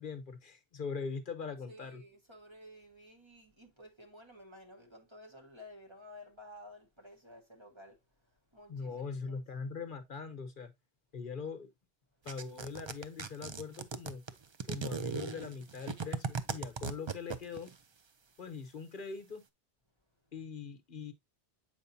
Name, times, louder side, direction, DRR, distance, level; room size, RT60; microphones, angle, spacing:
voice 1, 0.0-2.0 8.7-10.7 11.1-11.7 12.2-14.2 14.7-17.7 18.4-19.4 20.3-21.1, left 5 dB, 50° left, 1.1 m, -41 dB
voice 2, 1.7-8.0 8.3-9.4, left 1 dB, 25° right, 1.3 m, -53 dB
sound 1, 12.3-17.7, right 5 dB, 45° right, 0.3 m, -38 dB
8.1 x 5.1 x 2.7 m
omnidirectional pair, 1.2 m